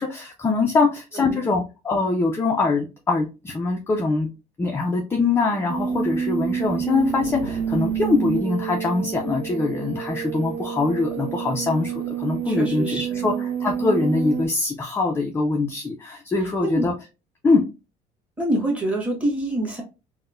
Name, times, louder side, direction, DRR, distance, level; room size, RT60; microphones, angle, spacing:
voice 1, 0.0-4.3 4.6-16.9 17.4-17.6, left 3 dB, 15° left, 1 dB, 0.4 m, -23 dB
sound 1, 5.7-14.5, right 8 dB, 70° right, 0.4 m, -28 dB
voice 2, 12.4-13.3 16.6-16.9 18.4-19.8, right 1 dB, 10° right, -1 dB, 1.2 m, -26 dB
4.0 x 2.1 x 2.4 m, 0.29 s
cardioid pair, 135°, 15 cm